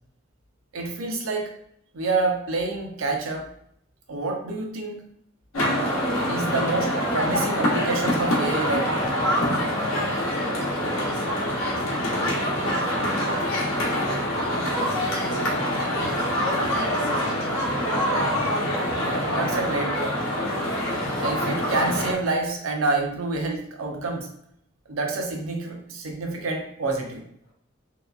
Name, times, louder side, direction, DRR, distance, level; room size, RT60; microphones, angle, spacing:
voice 1, 0.7-1.5 1.9-3.5 4.1-5.0 5.7-9.1 19.3-20.2 21.2-24.3 24.9-27.2, right 3 dB, 90° right, 1 dB, 0.6 m, -28 dB
sound 1, 5.5-22.1, equal, 85° left, 0.8 m, -25 dB
voice 2, 10.1-14.1 14.4-17.8 27.4-27.5, equal, 65° left, -3 dB, 1.0 m, -41 dB
2.8 x 2.3 x 2.3 m, 0.69 s
head